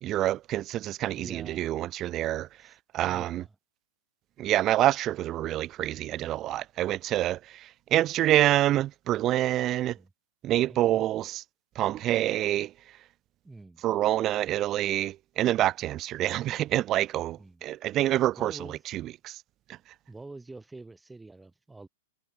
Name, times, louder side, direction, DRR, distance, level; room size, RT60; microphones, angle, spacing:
voice 1, 0.0-2.5 2.9-3.4 4.4-7.4 7.9-10.0 10.4-11.4 11.8-12.7 13.8-18.5 18.9-19.4, right 13 dB, 25° right, 0.4 m, -26 dB
voice 2, 1.2-1.7 2.6-2.8 3.1-3.5 9.9-10.1 10.7-11.1 13.4-13.8 17.4-17.6 18.4-18.8 20.1-21.9, right 3 dB, 5° right, 5.2 m, -46 dB
supercardioid pair, 160°, 0 cm